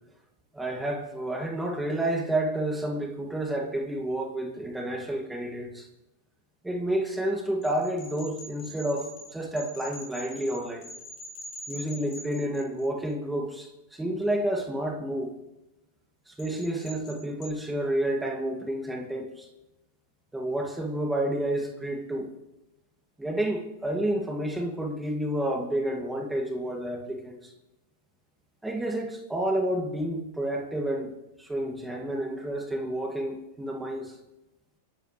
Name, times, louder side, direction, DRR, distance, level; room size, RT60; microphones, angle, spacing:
voice 1, 0.5-5.9 6.6-10.9 11.7-15.3 16.3-19.5 20.3-22.3 23.2-27.5 28.6-31.1 31.4-34.2, right 1 dB, 5° right, 1 dB, 2.3 m, -30 dB
sound 1, 7.6-13.1 16.4-17.5, equal, 40° left, 6.5 m, -44 dB
29.5 x 11.5 x 3.3 m, 0.95 s
hypercardioid pair, 100°, 0 cm